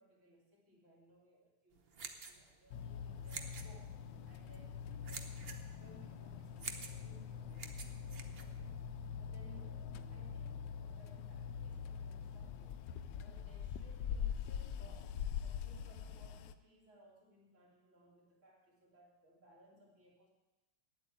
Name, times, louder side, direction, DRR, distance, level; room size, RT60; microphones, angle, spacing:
voice 1, 0.0-3.9 4.2-8.8 9.2-12.8 13.1-20.3, right 1 dB, 35° right, -3 dB, 3.3 m, -64 dB
sound 1, 1.7-9.1, right 5 dB, 80° right, 0.5 m, -50 dB
sound 2, 2.7-16.5, left 7 dB, 75° left, 1.1 m, -44 dB
9.5 x 8.2 x 8.9 m, 1.1 s
omnidirectional pair, 2.4 m